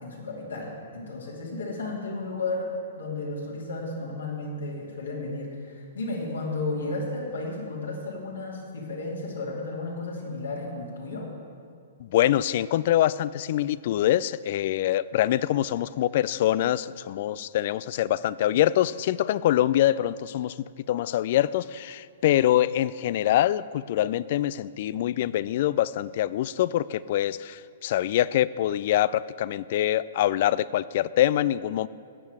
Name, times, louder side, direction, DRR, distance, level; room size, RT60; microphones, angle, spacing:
voice 1, 0.0-2.7 3.0-11.3, left 2 dB, 85° left, -3 dB, 2.7 m, -33 dB
voice 2, 12.0-20.6 20.9-31.9, left 13 dB, 55° left, 19 dB, 0.3 m, -24 dB
13.5 x 8.8 x 4.8 m, 2.3 s
hypercardioid pair, 120°, 0 cm